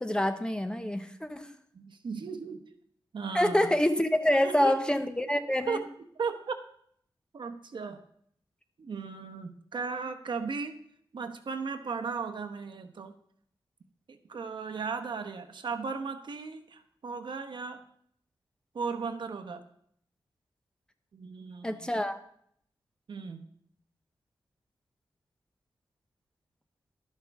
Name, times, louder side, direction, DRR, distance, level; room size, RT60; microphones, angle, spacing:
voice 1, 0.0-1.5 3.3-5.8 21.6-22.2, left 1 dB, 10° left, 8 dB, 0.8 m, -26 dB
voice 2, 1.7-2.7 3.1-3.7 4.4-4.8 5.7-5.9 6.1-6.6 7.3-8.0 8.8-10.8 11.1-13.2 14.1-17.8 18.7-19.6 21.1-21.9 23.1-23.5, right 5 dB, 65° right, 8 dB, 1.0 m, -36 dB
12.5 x 11.0 x 3.5 m, 0.65 s
wide cardioid pair, 125°, 9 cm